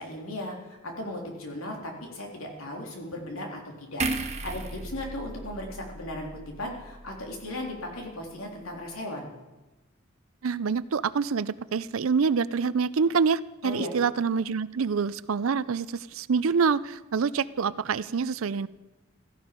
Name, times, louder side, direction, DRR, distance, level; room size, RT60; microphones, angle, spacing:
voice 1, 0.0-9.3 13.6-13.9, left 1 dB, 90° left, 0 dB, 3.5 m, -37 dB
sound 1, 4.0-7.4 7.7-7.9, right 2 dB, 35° right, 1.3 m, -35 dB
voice 2, 10.4-18.7, right 5 dB, 80° right, 17 dB, 0.5 m, -26 dB
16.0 x 14.5 x 5.2 m, 1.1 s
head